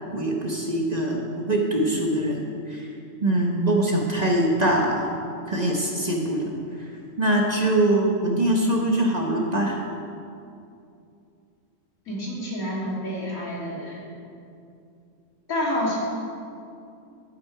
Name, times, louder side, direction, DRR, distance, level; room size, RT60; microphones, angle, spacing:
voice 1, 0.1-2.9 3.2-5.1 5.5-6.4 6.8-6.9 7.2-9.8, right 1 dB, 30° right, 0 dB, 1.1 m, -23 dB
voice 2, 12.1-14.0 15.5-16.0, left 1 dB, 80° left, -6 dB, 3.0 m, -28 dB
12.0 x 8.6 x 4.8 m, 2.5 s
omnidirectional pair, 1.4 m